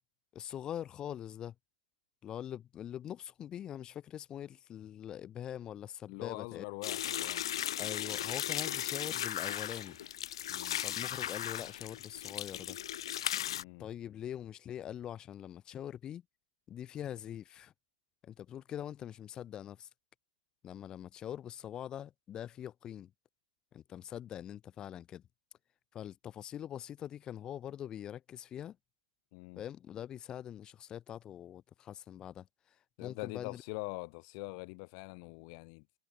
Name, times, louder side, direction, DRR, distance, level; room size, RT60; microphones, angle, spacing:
voice 1, 0.3-1.5 2.2-6.6 7.8-10.0 10.8-12.8 13.8-16.2 16.7-17.7 18.2-19.9 20.6-23.1 23.7-25.2 25.9-28.8 29.5-32.5 33.0-33.6, left 10 dB, 25° left, 2.8 m, -43 dB
voice 2, 6.1-7.5 10.5-10.8 13.5-13.8 29.3-29.6 33.0-35.9, left 33 dB, 45° left, 1.9 m, -43 dB
sound 1, 6.8-13.6, left 11 dB, 65° left, 0.5 m, -37 dB
hypercardioid pair, 110°, 3 cm